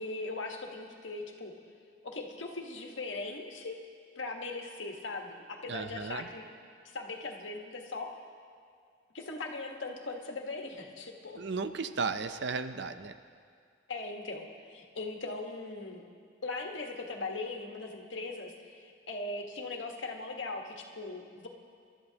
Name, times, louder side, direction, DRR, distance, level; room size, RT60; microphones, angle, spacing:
voice 1, 0.0-1.5 2.0-3.8 4.1-6.5 6.8-8.1 9.1-11.4 13.9-16.0 16.4-21.5, left 3 dB, 75° left, 1 dB, 1.5 m, -39 dB
voice 2, 5.7-6.3 11.4-13.1, right 4 dB, 65° right, 10 dB, 0.6 m, -35 dB
28.0 x 12.5 x 2.9 m, 2.2 s
head